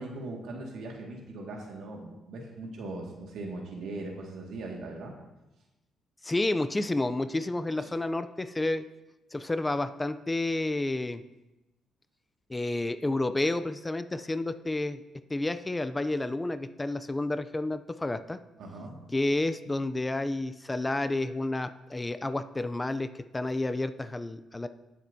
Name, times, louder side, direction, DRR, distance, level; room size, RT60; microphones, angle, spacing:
voice 1, 0.0-5.1 7.8-7.9 18.6-19.1, right 2 dB, 75° right, 0 dB, 2.0 m, -40 dB
voice 2, 6.2-8.8 9.3-11.2 12.5-15.0 15.3-18.4 19.1-24.7, left 2 dB, 15° left, 11 dB, 0.5 m, -30 dB
18.5 x 7.4 x 2.8 m, 1.0 s
cardioid pair, 90°, 0 cm